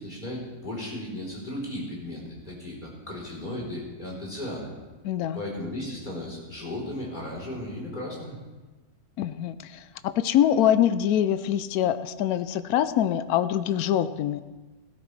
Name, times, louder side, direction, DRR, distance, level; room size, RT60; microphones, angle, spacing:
voice 1, 0.0-4.7 5.3-8.4, left 1 dB, 30° left, -3 dB, 3.8 m, -35 dB
voice 2, 5.0-5.4 9.2-14.4, left 10 dB, 80° left, 12 dB, 1.1 m, -24 dB
16.5 x 12.5 x 3.2 m, 1.2 s
omnidirectional pair, 1.5 m